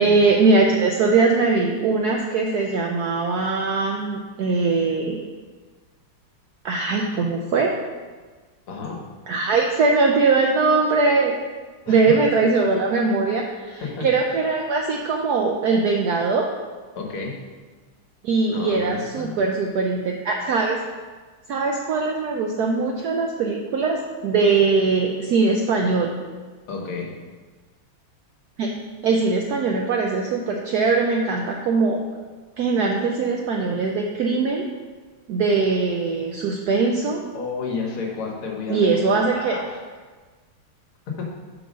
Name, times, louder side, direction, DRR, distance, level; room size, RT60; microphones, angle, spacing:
voice 1, 0.0-5.2 6.6-7.7 9.3-11.4 11.9-16.5 18.2-20.8 21.5-26.1 28.6-28.7 29.0-32.0 32.6-34.7 35.3-37.2 38.7-39.6, right 4 dB, 80° right, 1 dB, 0.8 m, -21 dB
voice 2, 8.7-9.0 11.9-12.0 13.7-14.1 17.0-17.4 18.5-19.4 26.7-27.1 37.3-39.8 41.2-41.3, left 4 dB, 85° left, 0 dB, 2.0 m, -31 dB
5.2 x 4.6 x 6.2 m, 1.4 s
omnidirectional pair, 2.3 m